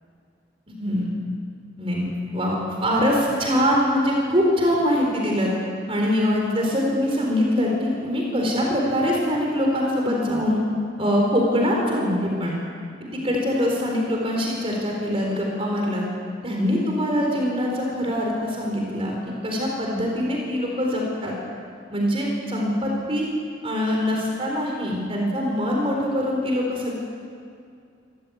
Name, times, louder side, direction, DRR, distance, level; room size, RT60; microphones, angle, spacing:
voice 1, 1.8-5.5 5.9-10.6 11.0-12.5 13.0-16.1 16.4-21.3 21.9-23.3 23.6-27.0, equal, 30° right, -1 dB, 4.1 m, -23 dB
26.0 x 14.5 x 8.6 m, 2.3 s
head